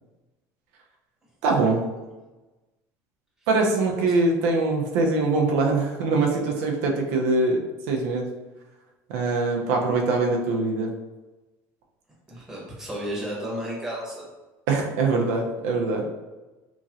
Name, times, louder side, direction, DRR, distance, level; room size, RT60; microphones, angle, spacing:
voice 1, 1.4-1.9 3.5-7.6 7.9-8.3 9.1-10.9 14.7-16.1, right 3 dB, 90° right, 0 dB, 0.5 m, -23 dB
voice 2, 12.3-14.2, equal, 5° right, -5 dB, 0.9 m, -33 dB
2.9 x 2.7 x 2.4 m, 1.1 s
cardioid pair, 130°, 8 cm